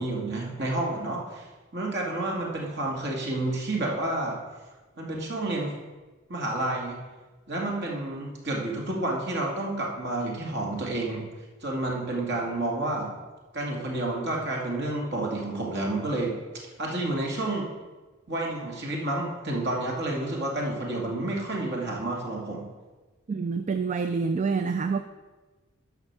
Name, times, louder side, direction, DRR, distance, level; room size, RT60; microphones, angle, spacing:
voice 1, 0.0-1.5 1.7-4.4 5.0-5.8 6.3-7.0 7.5-11.3 11.6-13.1 13.5-16.4 16.8-17.7 18.3-22.7, right 2 dB, 55° right, -1 dB, 2.3 m, -30 dB
voice 2, 23.3-25.0, right 5 dB, 35° right, 9 dB, 0.4 m, -27 dB
10.5 x 6.1 x 6.1 m, 1.3 s
head